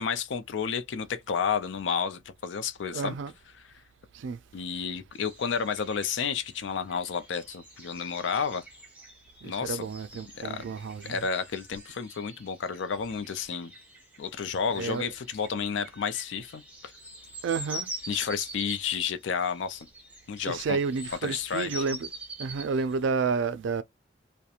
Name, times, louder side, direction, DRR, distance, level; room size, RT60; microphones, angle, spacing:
voice 1, 0.0-3.2 3.6-3.7 4.5-8.6 9.4-9.9 10.3-10.6 11.1-13.7 14.2-16.6 18.1-19.9 20.3-20.8 21.2-21.9, left 6 dB, 75° left, 0.4 m, -31 dB
voice 2, 2.9-3.3 4.2-4.4 9.4-11.2 14.8-15.1 17.4-17.9 20.5-22.1 22.4-23.8, right 5 dB, 80° right, 0.4 m, -30 dB
Early April Sound Safari, 5.1-23.1, right 1 dB, 10° right, 0.8 m, -45 dB
2.4 x 2.1 x 2.7 m
head